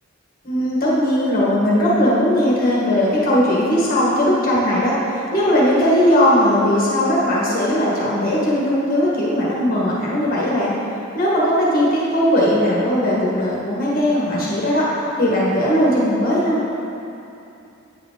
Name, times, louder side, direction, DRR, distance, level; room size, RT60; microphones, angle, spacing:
voice 1, 0.4-10.7 11.1-14.9 15.2-16.6, equal, 45° left, -6 dB, 1.4 m, -18 dB
9.0 x 4.8 x 3.8 m, 2.8 s
head